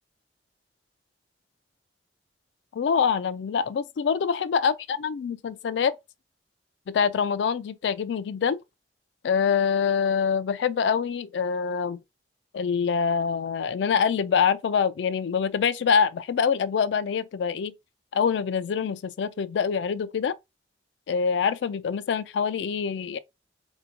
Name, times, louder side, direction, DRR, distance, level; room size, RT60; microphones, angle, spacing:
voice 1, 2.7-6.0 6.9-8.6 9.2-12.0 12.5-17.7 18.1-20.3 21.1-23.2, left 6 dB, 80° left, 0.3 m, -25 dB
4.3 x 2.7 x 2.7 m
head